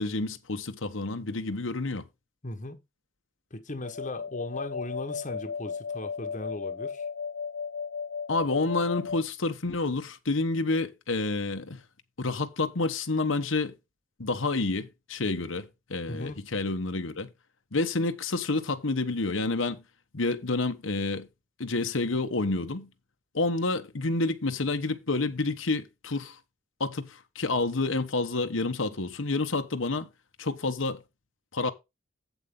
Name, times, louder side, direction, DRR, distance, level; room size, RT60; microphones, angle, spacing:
voice 1, 0.0-2.0 8.3-11.8 12.2-13.7 14.2-17.3 17.7-19.8 20.1-21.3 21.6-22.9 23.3-26.4 26.8-30.1 30.4-31.0 31.5-31.7, left 3 dB, 85° left, 1.2 m, -29 dB
voice 2, 2.4-2.8 3.5-7.1 16.1-16.5, left 2 dB, 40° left, 1.2 m, -37 dB
sound 1, 3.8-9.2, left 6 dB, 60° left, 0.6 m, -35 dB
8.3 x 8.0 x 3.7 m
head